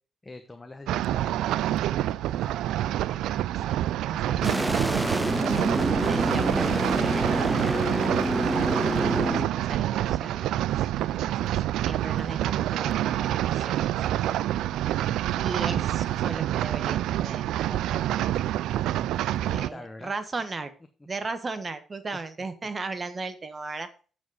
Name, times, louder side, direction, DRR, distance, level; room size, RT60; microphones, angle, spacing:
voice 1, 0.2-2.6 19.4-20.1, left 2 dB, 20° left, 7 dB, 1.1 m, -45 dB
sound 1, 0.9-19.7, right 13 dB, 85° right, 0.3 m, -27 dB
voice 2, 3.5-5.1 5.7-8.1 9.2-10.7 11.0-13.8 15.3-18.4 19.4-20.7 21.1-23.9, right 3 dB, 30° right, 11 dB, 1.3 m, -37 dB
sound 2, 4.4-9.5, right 1 dB, 5° right, 0.4 m, -27 dB
8.1 x 7.3 x 4.8 m, 0.38 s
cardioid pair, 90°, 0 cm